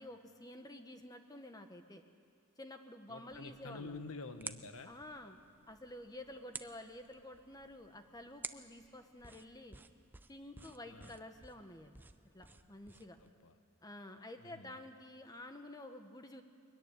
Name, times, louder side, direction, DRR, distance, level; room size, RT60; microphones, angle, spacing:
voice 1, 0.0-2.0 2.6-4.0 4.9-5.4 5.7-9.8 10.3-12.0 12.3-13.2 13.8-16.4, left 1 dB, 15° left, 6 dB, 1.2 m, -50 dB
voice 2, 3.1-5.0 10.8-11.2 13.2-13.5 14.4-14.8, left 3 dB, 75° left, 9 dB, 1.2 m, -49 dB
sound 1, 3.3-13.3, right 3 dB, 10° right, 0.4 m, -53 dB
22.5 x 14.0 x 9.9 m, 2.6 s
head